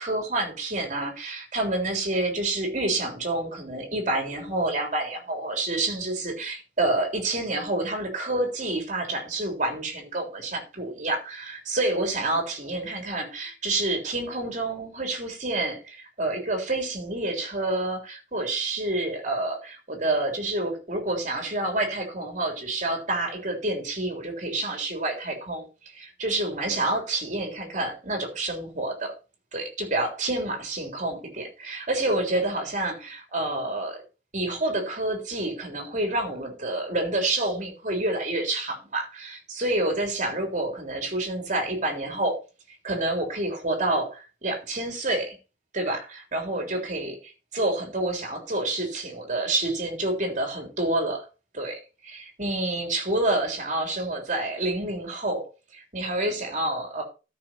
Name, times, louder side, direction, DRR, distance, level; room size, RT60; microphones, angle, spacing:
voice 1, 0.0-25.6 25.9-29.1 29.5-34.0 34.3-42.4 42.7-45.4 45.7-51.2 51.5-55.5 55.7-57.0, right 2 dB, 45° right, 3.5 m, -28 dB
13.5 x 6.1 x 4.4 m
head